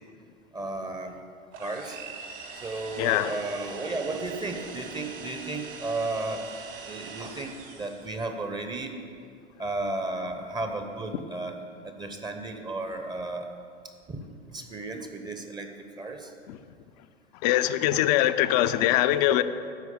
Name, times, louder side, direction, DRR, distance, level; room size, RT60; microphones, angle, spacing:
voice 1, 0.5-1.1 1.6-2.0 2.6-6.4 6.8-7.5 7.8-8.9 9.6-11.6 12.0-13.5 14.1-14.2 14.5-15.7 16.0-16.3, right 2 dB, 15° right, 5 dB, 0.8 m, -33 dB
sound 1, 1.5-8.2, right 5 dB, 55° right, 1.5 m, -43 dB
voice 2, 3.0-3.3 17.4-19.4, left 13 dB, 40° left, 11 dB, 0.5 m, -22 dB
12.5 x 4.7 x 8.1 m, 2.3 s
figure-of-eight pair, 90°, 33 cm